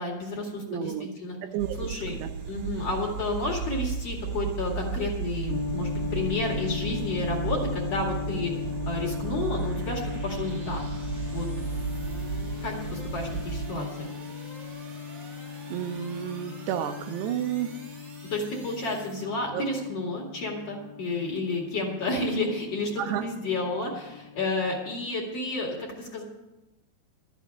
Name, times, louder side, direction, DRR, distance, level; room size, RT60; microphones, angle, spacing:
voice 1, 0.0-1.4 1.8-2.2 2.5-8.5 8.9-10.8 11.3-11.5 12.6-14.1 18.3-26.2, left 2 dB, 45° left, -1 dB, 2.8 m, -31 dB
voice 2, 0.7-1.1 1.4-1.8 2.1-2.3 15.7-17.7 19.5-19.7 23.0-23.2, right 10 dB, 85° right, 8 dB, 2.9 m, -31 dB
sound 1, 1.6-13.7, right 5 dB, 65° right, 3.2 m, -34 dB
sound 2, 5.5-25.1, left 6 dB, 75° left, 2.3 m, -38 dB
sound 3, 5.9-19.2, right 3 dB, 45° right, 1.5 m, -49 dB
13.0 x 7.0 x 8.4 m, 1.0 s
omnidirectional pair, 4.7 m